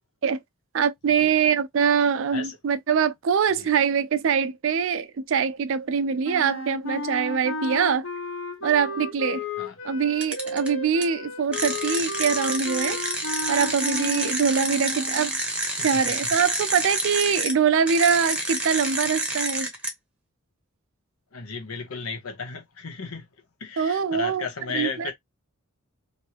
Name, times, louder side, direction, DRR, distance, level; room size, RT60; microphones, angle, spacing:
voice 1, 0.7-8.1 8.6-9.4 9.8-13.0 13.5-15.3 15.8-19.7 23.8-24.5 24.7-25.1, right 6 dB, 60° right, 0.4 m, -23 dB
sound 1, 6.2-15.4, left 2 dB, 65° left, 1.1 m, -34 dB
sound 2, 10.2-10.7 11.0-11.1 11.5-17.5 17.9-19.9, right 2 dB, 5° right, 0.8 m, -28 dB
voice 2, 21.3-23.2 23.6-25.1, left 5 dB, 90° left, 0.9 m, -34 dB
3.0 x 2.6 x 2.9 m
head